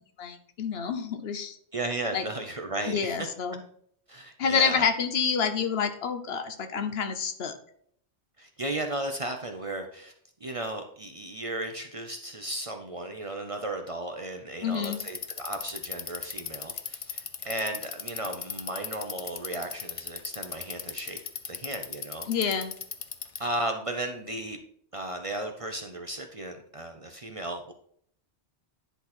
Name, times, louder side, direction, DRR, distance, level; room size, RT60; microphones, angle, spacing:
voice 1, 0.2-1.6 2.1-2.2 2.9-3.6 4.4-7.6 14.6-15.0 22.3-22.7, left 6 dB, 65° left, 9 dB, 1.0 m, -28 dB
voice 2, 1.7-3.3 4.1-4.8 8.4-10.1 10.4-21.2 21.5-22.3 22.5-22.6 23.4-24.6 24.9-27.7, right 1 dB, 35° right, 5 dB, 0.6 m, -35 dB
Bicycle, 14.7-23.5, left 6 dB, 45° left, 0.4 m, -37 dB
10.0 x 4.1 x 4.3 m, 0.63 s
omnidirectional pair, 1.2 m